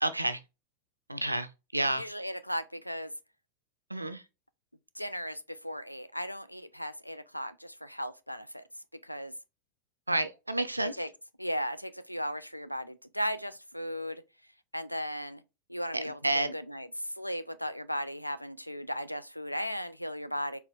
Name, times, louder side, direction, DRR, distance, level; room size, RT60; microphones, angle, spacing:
voice 1, 0.0-0.4 1.1-1.5 1.7-2.0 3.9-4.2 10.1-10.9 16.0-16.5, right 2 dB, 85° right, 0.4 m, -29 dB
voice 2, 2.0-3.1 5.0-8.6 9.0-9.3 10.8-11.1 11.4-14.2 14.7-15.4 15.7-20.6, equal, 90° left, 0.3 m, -36 dB
4.4 x 3.5 x 2.2 m
figure-of-eight pair, 90°, 0 cm